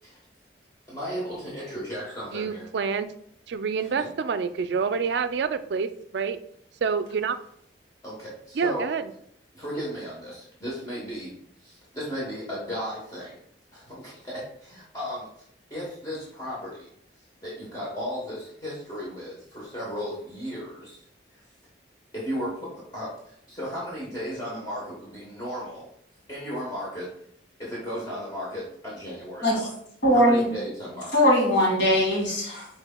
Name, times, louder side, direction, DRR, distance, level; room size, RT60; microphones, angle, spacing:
voice 1, 0.9-2.7 4.0-4.1 8.0-8.9 9.5-11.3 11.6-13.4 13.7-15.3 15.7-16.9 17.4-21.0 22.1-25.8 26.3-27.1 27.6-29.7 30.1-31.1, equal, 20° left, -7 dB, 1.1 m, -35 dB
voice 2, 2.3-3.1 3.5-6.4 6.8-7.4 8.5-9.1, right 5 dB, 70° right, 11 dB, 0.4 m, -27 dB
voice 3, 30.0-30.5 31.1-32.7, equal, 75° left, -3 dB, 1.8 m, -20 dB
6.0 x 4.0 x 2.2 m, 0.69 s
head